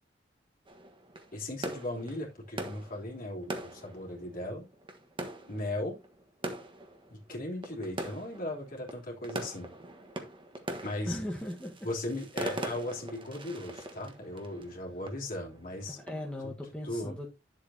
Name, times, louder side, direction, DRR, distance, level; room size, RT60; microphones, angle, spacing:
sound 1, 0.7-16.4, right 1 dB, 25° right, 1.3 m, -42 dB
voice 1, 1.3-4.7 5.5-6.0 7.1-9.7 10.8-11.2 11.8-16.0 16.8-17.1, left 1 dB, 50° left, 3.2 m, -37 dB
voice 2, 11.1-11.7 15.9-17.3, left 1 dB, 5° left, 1.4 m, -38 dB
10.5 x 7.5 x 2.8 m
head